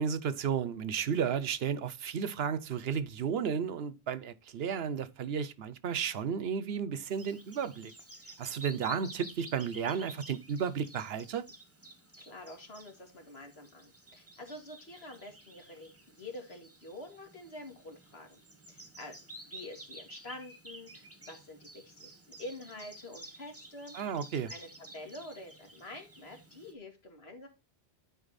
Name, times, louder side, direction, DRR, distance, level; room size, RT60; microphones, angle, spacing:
voice 1, 0.0-7.9 8.4-11.4 23.9-24.5, right 7 dB, 70° right, 0.9 m, -33 dB
Bird vocalization bird call bird song, 7.1-26.7, right 1 dB, 15° right, 1.2 m, -52 dB
voice 2, 12.2-18.4 18.7-22.1 22.4-24.2 24.5-27.5, left 1 dB, 75° left, 2.3 m, -47 dB
10.0 x 4.4 x 4.0 m
omnidirectional pair, 1.1 m